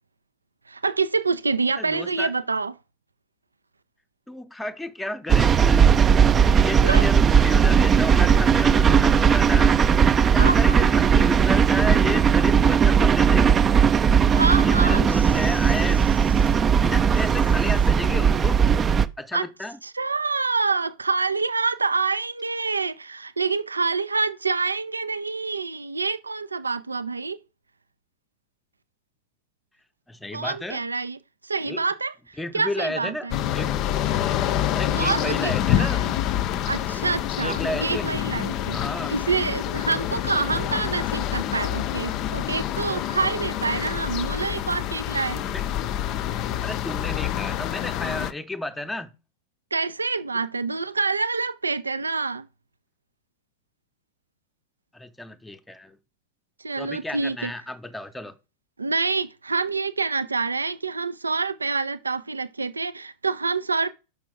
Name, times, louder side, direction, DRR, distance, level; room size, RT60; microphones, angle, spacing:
voice 1, 0.7-2.7 6.8-7.0 10.4-10.8 14.3-15.2 15.5-15.6 19.3-19.5 19.8-27.4 30.3-32.1 32.5-33.3 35.0-36.0 36.7-38.8 39.1-45.4 49.7-52.5 56.6-57.5 58.8-63.9, right 4 dB, 80° right, 0.4 m, -26 dB
voice 2, 1.8-2.3 4.3-6.1 6.4-13.6 14.6-16.0 16.8-18.6 19.2-19.8 30.1-30.8 31.7-31.8 32.4-33.3 33.5-33.9 34.7-36.1 37.4-38.2 38.7-39.1 44.3-44.4 45.3-45.6 46.6-49.1 54.9-56.0 56.8-58.4, left 2 dB, 5° left, 0.7 m, -32 dB
sound 1, 5.3-19.1, right 7 dB, 25° right, 0.5 m, -18 dB
sound 2, 33.3-48.3, left 11 dB, 40° left, 0.5 m, -27 dB
6.0 x 5.3 x 4.8 m
figure-of-eight pair, 90°, 0 cm